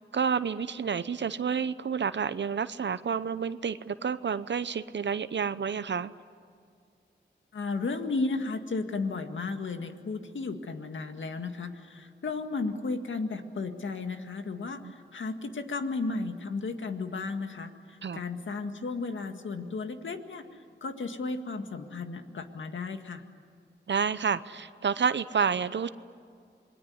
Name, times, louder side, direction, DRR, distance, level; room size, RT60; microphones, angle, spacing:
voice 1, 0.1-6.1 14.8-14.9 18.0-18.2 23.9-25.9, right 6 dB, 70° right, 14 dB, 0.8 m, -29 dB
voice 2, 7.5-14.8 15.1-20.4 20.8-23.2, left 3 dB, 80° left, 6 dB, 1.9 m, -34 dB
27.5 x 21.5 x 9.5 m, 2.2 s
cardioid pair, 55°, 20 cm